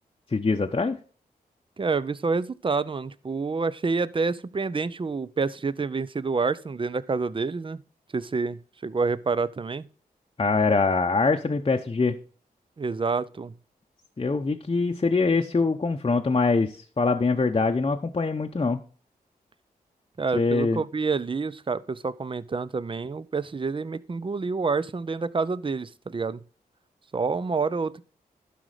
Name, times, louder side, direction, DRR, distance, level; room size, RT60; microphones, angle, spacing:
voice 1, 0.3-1.0 10.4-12.2 14.2-18.8 20.3-20.8, left 3 dB, 30° left, 0.8 m, -23 dB
voice 2, 1.8-7.8 8.1-9.9 12.8-13.6 20.2-26.4 27.1-28.0, right 4 dB, 30° right, 0.6 m, -28 dB
11.5 x 5.1 x 4.9 m
cardioid pair, 50°, 16 cm